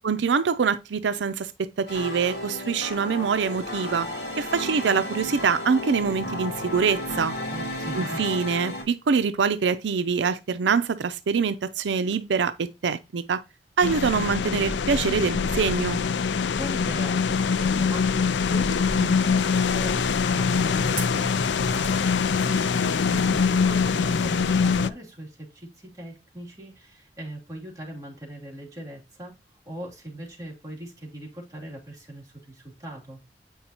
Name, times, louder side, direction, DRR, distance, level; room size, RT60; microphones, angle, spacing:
voice 1, 0.0-4.1 4.4-7.3 8.0-13.4 13.8-16.0, right 5 dB, 85° right, 0.5 m, -24 dB
sound 1, 1.9-8.8, left 1 dB, 65° left, 3.0 m, -33 dB
voice 2, 7.5-8.2 16.5-20.0 20.3-29.3 29.7-33.2, right 1 dB, 20° right, 2.7 m, -40 dB
sound 2, 13.8-24.9, left 5 dB, 85° left, 0.4 m, -24 dB
sound 3, 19.3-24.8, right 2 dB, 45° right, 2.4 m, -40 dB
8.5 x 5.5 x 2.9 m
head